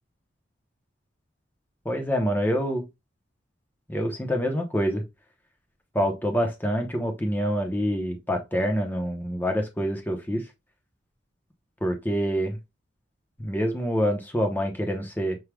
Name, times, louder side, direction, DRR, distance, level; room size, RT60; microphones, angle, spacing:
voice 1, 1.8-2.9 3.9-5.0 5.9-10.5 11.8-12.6 13.4-15.4, equal, 10° left, 0.7 m, -26 dB
6.0 x 2.3 x 3.3 m
head